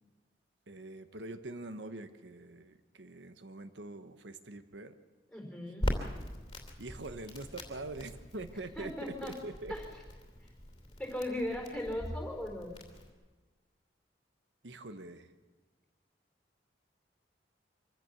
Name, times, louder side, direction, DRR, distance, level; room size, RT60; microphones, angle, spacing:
voice 1, 0.7-4.9 6.8-9.7 14.6-15.3, right 2 dB, 85° right, 10 dB, 1.2 m, -44 dB
voice 2, 5.3-5.9 8.8-9.3 9.7-9.9 11.0-12.7, left 1 dB, 5° left, 1 dB, 4.4 m, -38 dB
Crackle, 5.8-13.1, equal, 25° left, 2.9 m, -41 dB
25.0 x 15.5 x 7.0 m, 1.3 s
head